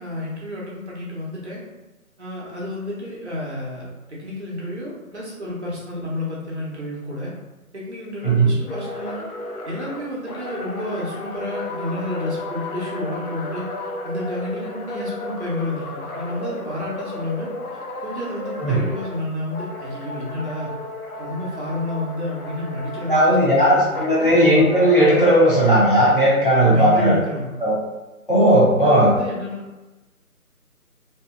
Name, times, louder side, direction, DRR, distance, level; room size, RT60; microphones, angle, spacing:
voice 1, 0.0-1.6 2.2-7.3 7.7-9.2 9.6-13.7 14.0-17.5 18.0-20.7 21.2-24.3 26.6-27.5 28.8-29.6, left 1 dB, 50° right, -5 dB, 0.7 m, -30 dB
sound 1, 8.7-19.2 19.5-23.5 23.9-26.1, left 2 dB, 85° left, 0.6 m, -33 dB
voice 2, 23.1-27.1 27.6-27.7 28.3-29.1, right 1 dB, 40° left, -9 dB, 0.6 m, -16 dB
2.7 x 2.0 x 2.3 m, 1.1 s
figure-of-eight pair, 160°, 44 cm